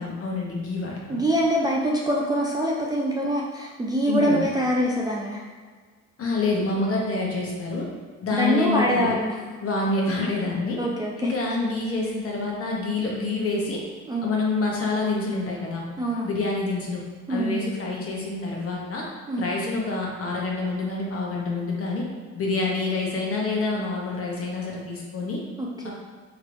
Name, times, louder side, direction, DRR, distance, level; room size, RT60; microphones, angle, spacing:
voice 1, 0.0-1.2 4.1-4.5 6.2-7.9 8.2-9.1 9.6-10.8 11.2-13.8 14.2-15.8 16.2-17.0 17.3-19.0 19.4-22.0 22.3-25.4 25.8-25.9, left 3 dB, 50° left, -2 dB, 0.8 m, -27 dB
voice 2, 1.1-5.4 8.3-9.3 10.8-11.1 14.1-14.3 16.0-16.3 17.3-17.7 19.3-19.5 25.6-25.9, equal, 15° right, -3 dB, 0.3 m, -24 dB
3.2 x 3.1 x 2.5 m, 1.5 s
cardioid pair, 90°, 30 cm